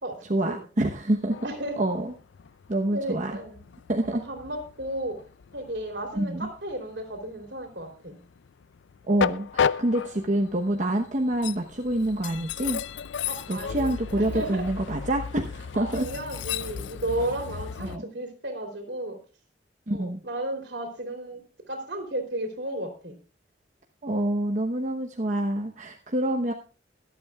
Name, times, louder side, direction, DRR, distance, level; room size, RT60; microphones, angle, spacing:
voice 1, 0.3-1.4 1.8-2.1 2.7-3.3 3.9-4.2 6.1-6.5 9.1-12.8 13.5-16.0 17.8-18.0 19.9-20.2 24.0-26.5, right 1 dB, 45° right, 2 dB, 1.0 m, -27 dB
Train, 1.2-18.0, left 7 dB, 80° left, 0.4 m, -34 dB
voice 2, 1.4-1.8 2.9-3.6 4.1-5.2 5.5-8.2 13.3-14.6 15.7-19.2 19.9-23.2, right 1 dB, 70° right, 4 dB, 3.3 m, -34 dB
23.5 x 8.6 x 2.4 m, 0.35 s
head